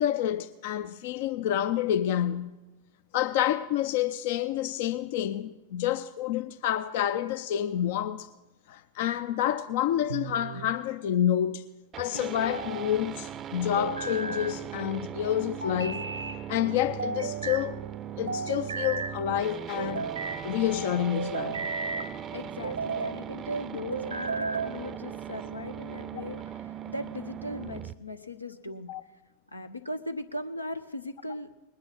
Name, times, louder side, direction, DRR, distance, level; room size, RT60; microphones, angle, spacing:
voice 1, 0.0-2.6 3.1-8.3 8.7-11.6 12.0-16.0 16.5-17.8 18.2-20.1 20.4-21.7 28.9-29.0, left 11 dB, 50° left, 0.5 m, -28 dB
sound 1, 10.1-10.8 12.1-12.9 13.8-14.6 15.6-16.4 17.0-17.7 18.3-19.1 19.8-20.4 21.1-22.1 22.6-23.2 23.9-24.7, right 4 dB, 75° right, 0.7 m, -34 dB
sound 2, 11.9-27.9, right 9 dB, 30° right, 0.5 m, -39 dB
voice 2, 22.3-28.9 29.5-31.5, left 1 dB, 85° left, 0.8 m, -38 dB
20.0 x 9.6 x 6.0 m
figure-of-eight pair, 90°, 0 cm